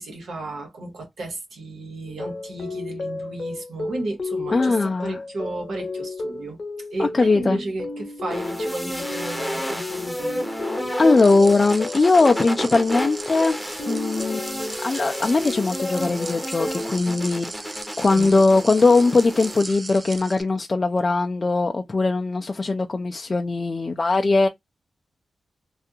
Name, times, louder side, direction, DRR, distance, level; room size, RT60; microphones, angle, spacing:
voice 1, 0.0-6.6 6.9-10.4 18.1-18.4, right 2 dB, 85° right, 1.1 m, -34 dB
sound 1, 2.1-16.9, left 2 dB, 55° left, 0.8 m, -33 dB
voice 2, 4.5-5.2 7.0-7.6 11.0-13.6 13.9-24.5, left 3 dB, 40° left, 0.3 m, -20 dB
sound 2, 8.3-19.6, equal, ahead, 0.7 m, -31 dB
sound 3, 11.2-20.4, right 3 dB, 40° right, 0.3 m, -38 dB
2.4 x 2.3 x 2.7 m
cardioid pair, 70°, 0 cm